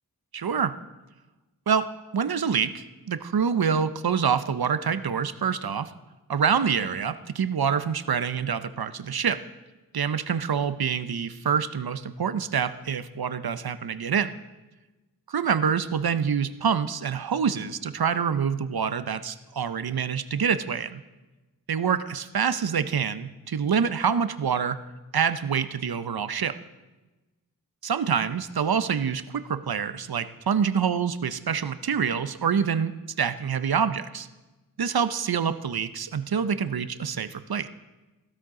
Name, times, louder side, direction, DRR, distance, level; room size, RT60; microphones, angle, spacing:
voice 1, 0.3-0.8 1.7-5.9 6.3-9.4 9.9-14.3 15.3-21.0 21.7-24.8 25.1-26.6 27.8-32.9 33.2-34.3 34.8-37.7, right 7 dB, 80° right, 13 dB, 0.7 m, -26 dB
15.5 x 13.0 x 3.7 m, 1.1 s
wide cardioid pair, 50°, 37 cm